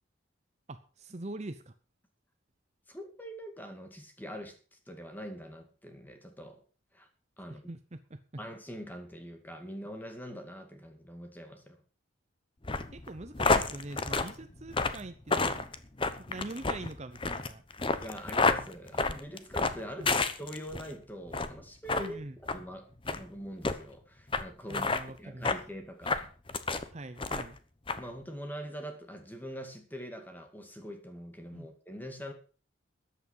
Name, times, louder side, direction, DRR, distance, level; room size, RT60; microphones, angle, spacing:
voice 1, 0.7-1.7 7.5-8.2 12.9-15.7 16.2-17.6 20.0-20.2 22.0-22.4 24.7-25.5 26.9-27.6 31.5-31.7, right 2 dB, 35° right, 10 dB, 0.7 m, -43 dB
voice 2, 2.9-6.6 6.9-7.1 7.4-7.7 8.4-11.8 18.0-22.2 22.5-22.9 23.1-24.9 25.2-26.3 26.6-26.9 28.0-32.3, equal, 10° left, 5 dB, 2.2 m, -43 dB
sound 1, 12.6-20.9 21.3-21.6 21.9-22.1 22.5-22.6 23.0-23.2 23.6-23.8 24.3-24.4 24.7-25.0 25.4-25.6 26.0-26.8 27.2-27.6 27.9-28.0, left 3 dB, 25° left, 0.9 m, -29 dB
14.0 x 9.9 x 5.5 m, 0.39 s
head